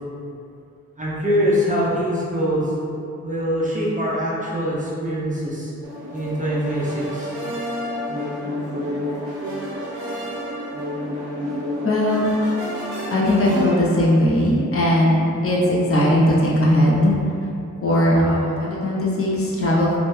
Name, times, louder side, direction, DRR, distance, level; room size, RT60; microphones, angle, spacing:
voice 1, 1.0-2.7 3.2-5.7 6.1-7.3, equal, 25° right, -7 dB, 0.6 m, -23 dB
sound 1, 5.8-14.1, left 1 dB, 70° right, 0.7 m, -29 dB
voice 2, 11.8-12.3 13.1-17.1 17.8-20.0, left 1 dB, 45° left, -5 dB, 0.5 m, -18 dB
2.6 x 2.1 x 3.1 m, 2.6 s
wide cardioid pair, 90°, 31 cm